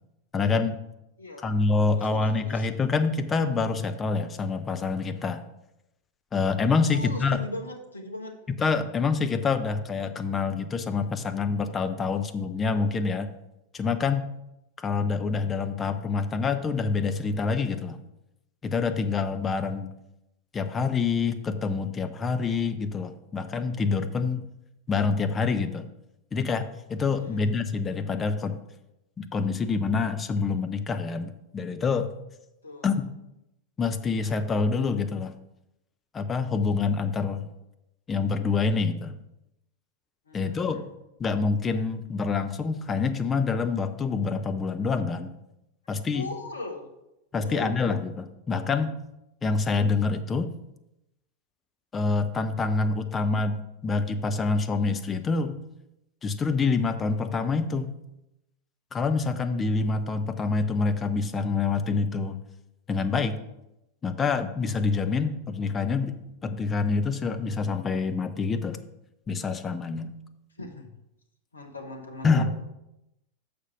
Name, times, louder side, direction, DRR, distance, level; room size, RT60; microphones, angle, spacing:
voice 1, 0.3-0.8 1.4-5.4 6.3-7.5 8.5-13.3 13.7-14.3 14.8-18.0 18.6-19.9 20.5-24.5 24.9-25.9 26.3-28.6 29.2-32.1 32.8-33.1 33.8-35.3 36.1-37.5 38.1-39.2 40.3-40.8 41.2-45.3 45.9-46.3 47.3-48.9 49.4-50.5 51.9-55.6 56.2-57.9 58.9-62.4 62.9-63.4 64.0-66.1 66.4-68.8 69.3-70.1 72.2-72.7, left 4 dB, 20° left, 8 dB, 0.6 m, -26 dB
voice 2, 1.2-1.5 1.9-2.7 6.9-8.4 27.1-27.6 32.6-32.9 40.3-40.9 46.1-46.9 47.4-47.7 70.6-70.9 71.5-72.5, left 2 dB, 75° left, 3 dB, 1.2 m, -39 dB
6.6 x 5.1 x 5.9 m, 0.88 s
figure-of-eight pair, 90°, 0 cm